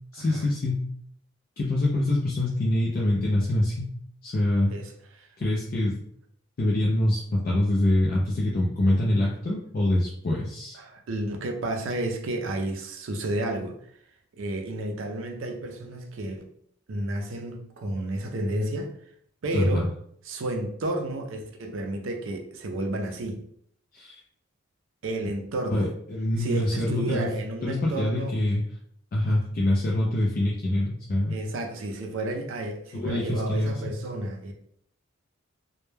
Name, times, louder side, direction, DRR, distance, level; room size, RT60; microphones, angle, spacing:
voice 1, 0.1-0.8 1.6-3.9 4.2-4.7 5.4-6.0 6.6-10.8 19.5-19.8 23.9-24.1 25.7-27.3 27.6-28.6 29.1-31.4 32.9-33.8, left 1 dB, 45° left, -3 dB, 0.4 m, -25 dB
voice 2, 4.7-5.3 10.7-13.9 14.3-16.4 16.9-19.0 19.4-19.9 20.2-23.4 25.0-25.9 26.4-28.3 29.2-29.3 31.3-34.5, right 1 dB, 70° right, 3 dB, 0.4 m, -31 dB
2.1 x 2.1 x 3.1 m, 0.67 s
head